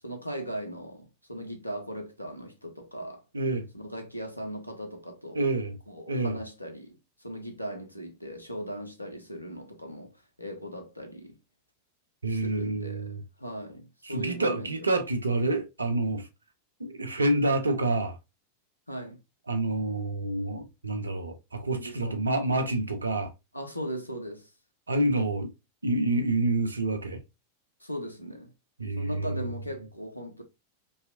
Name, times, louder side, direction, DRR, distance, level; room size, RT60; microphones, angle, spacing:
voice 1, 0.0-3.2 3.7-5.4 5.9-10.1 10.4-11.3 12.3-13.1 13.4-14.9 18.9-19.2 21.7-22.7 23.5-24.5 27.8-28.5 29.0-30.4, equal, 85° left, 0.6 m, -38 dB
voice 2, 3.3-3.7 5.3-5.8 6.1-6.4 12.2-13.2 14.0-16.3 16.8-18.2 19.5-23.3 24.9-25.5 25.8-27.2 28.8-29.4, right 2 dB, 80° right, 0.4 m, -28 dB
2.7 x 2.4 x 2.4 m
figure-of-eight pair, 90°, 0 cm